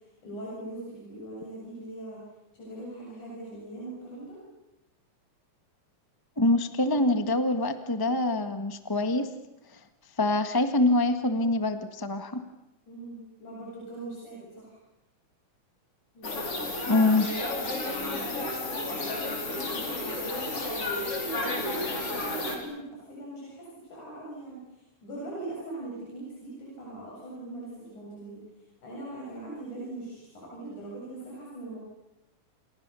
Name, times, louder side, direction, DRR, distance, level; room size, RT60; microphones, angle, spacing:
voice 1, 0.2-2.2 2.5-4.4 12.9-14.8 16.1-16.9 17.3-18.9 19.5-28.4 28.8-31.8, right 1 dB, 85° left, -4 dB, 9.3 m, -41 dB
voice 2, 6.4-9.3 9.7-9.8 10.2-12.4 16.8-17.3, left 2 dB, 15° left, 8 dB, 0.7 m, -25 dB
sound 1, 16.2-22.6, left 2 dB, 50° left, 5.7 m, -32 dB
29.0 x 29.0 x 7.0 m, 0.93 s
omnidirectional pair, 3.4 m